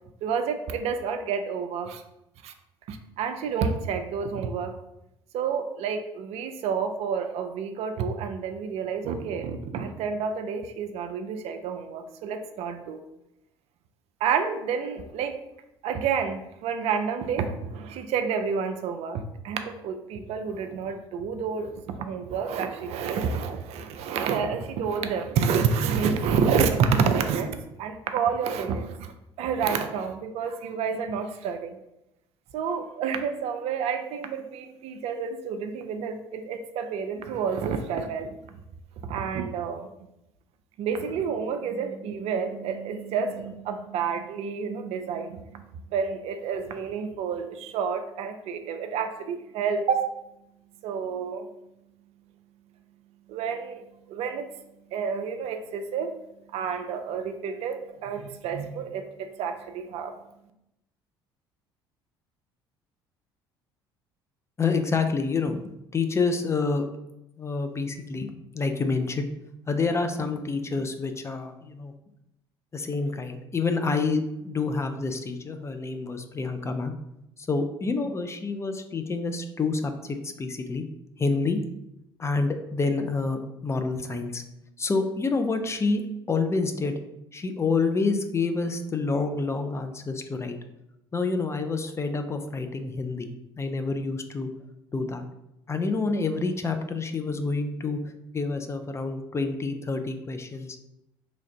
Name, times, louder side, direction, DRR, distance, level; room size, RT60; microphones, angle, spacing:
voice 1, 0.2-2.0 2.4-2.5 2.9-4.7 5.3-13.0 14.2-15.4 15.8-31.8 32.5-38.6 39.0-39.9 40.8-45.7 45.9-50.0 50.8-51.5 53.3-54.6 54.9-56.1 56.5-60.1, right 6 dB, 50° right, 7 dB, 0.4 m, -29 dB
voice 2, 64.6-66.9 67.4-69.3 69.7-71.9 72.7-76.9 77.4-80.8 81.2-81.6 82.2-84.4 84.8-86.0 86.3-87.0 87.3-90.6 91.1-94.5 94.9-95.2 95.7-98.0 98.3-100.8, left 4 dB, 20° left, 7 dB, 0.4 m, -28 dB
3.1 x 2.4 x 3.8 m, 0.86 s
figure-of-eight pair, 55°, 13 cm